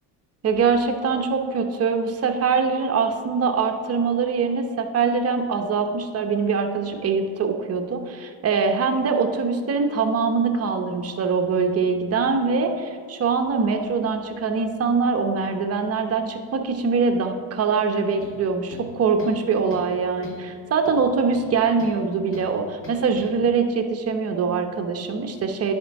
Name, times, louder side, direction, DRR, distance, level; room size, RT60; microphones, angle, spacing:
voice 1, 0.4-25.7, right 5 dB, 35° right, 5 dB, 0.9 m, -23 dB
sound 1, 18.2-18.4 18.7-19.4 19.7-19.9 20.2-20.5 20.8-22.0 22.3-22.5 22.8-23.3, equal, 30° left, 2.0 m, -41 dB
10.0 x 4.5 x 4.7 m, 2.1 s
supercardioid pair, 95°, 44 cm